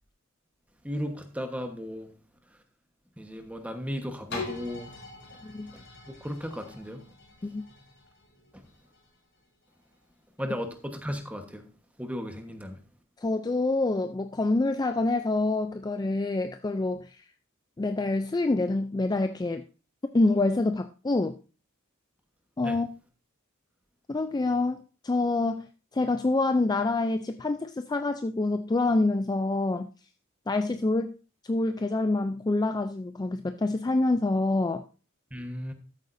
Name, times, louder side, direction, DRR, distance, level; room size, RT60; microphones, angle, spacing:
voice 1, 0.8-2.1 3.2-4.9 5.7-5.8 6.2-7.0 10.4-11.6 12.0-12.8 22.6-22.8 35.3-35.7, equal, 5° right, 1.2 m, -35 dB
sound 1, 4.3-10.0 10.6-10.7, left 3 dB, 55° left, 3.6 m, -43 dB
voice 2, 13.2-17.2 17.8-19.6 20.1-21.4 22.6-22.9 24.1-25.7 25.9-29.9 30.5-31.2 31.4-34.8, left 2 dB, 20° left, 0.4 m, -26 dB
13.5 x 8.2 x 2.6 m
head